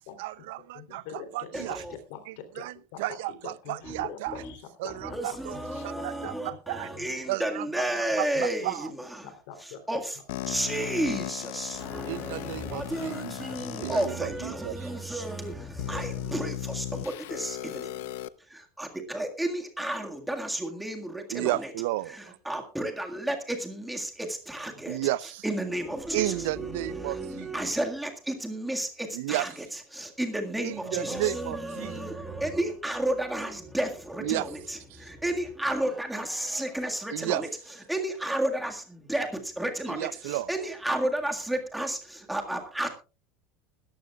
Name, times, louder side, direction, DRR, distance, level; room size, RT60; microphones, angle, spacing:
voice 1, 0.2-1.0 1.3-1.8 2.6-2.7 3.0-4.4 4.8-5.6 5.8-6.9 7.3-8.9 12.1-14.9 21.3-22.4 24.9-25.4 26.1-27.5 29.1-29.5 30.6-31.9 34.2-34.5 34.9-35.1 37.1-37.4 39.9-40.5, right 17 dB, 70° right, 0.6 m, -33 dB
voice 2, 0.7-2.7 2.9-6.3 6.7-7.1 7.3-7.4 8.1-8.4 9.2-9.8 10.4-10.5, left 8 dB, 60° left, 3.2 m, -45 dB
voice 3, 1.5-2.0 3.8-4.0 4.3-4.4 5.0-9.3 9.9-10.2 10.5-17.9 18.5-21.7 22.1-25.0 25.4-29.5 29.9-37.5 37.9-42.9, right 1 dB, 5° right, 1.8 m, -32 dB
sound 1, 10.3-14.0 14.8-14.9 15.8-18.3, left 14 dB, 80° left, 0.8 m, -36 dB
20.0 x 14.0 x 2.4 m
cardioid pair, 175°, 0 cm